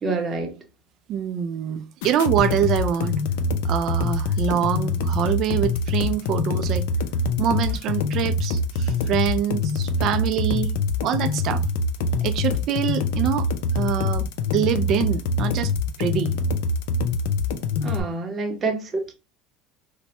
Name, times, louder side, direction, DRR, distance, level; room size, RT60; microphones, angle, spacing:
voice 1, 0.0-0.5 17.8-19.1, right 3 dB, 25° right, 0.7 m, -27 dB
voice 2, 1.1-3.2 3.6-6.9 7.4-10.7 11.0-11.6 12.2-13.5 13.7-14.3 14.5-15.7 16.0-16.4, right 9 dB, 50° right, 0.3 m, -25 dB
sound 1, 2.0-18.0, left 3 dB, 85° left, 0.4 m, -24 dB
3.1 x 2.1 x 2.8 m
cardioid pair, 140°, 0 cm